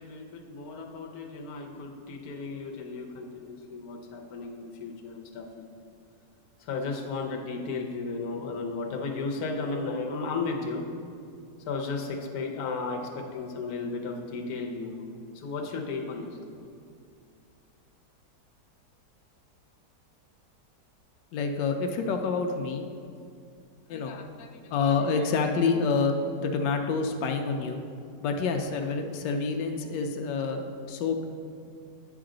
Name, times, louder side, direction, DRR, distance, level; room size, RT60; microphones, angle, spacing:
voice 1, 0.0-5.7 6.7-10.9 11.7-14.9 15.4-16.3, left 4 dB, 65° left, 1 dB, 1.2 m, -34 dB
voice 2, 21.3-22.9 23.9-27.8 28.2-31.2, left 4 dB, 85° left, 4 dB, 1.3 m, -28 dB
9.4 x 6.1 x 3.8 m, 2.4 s
omnidirectional pair, 1.9 m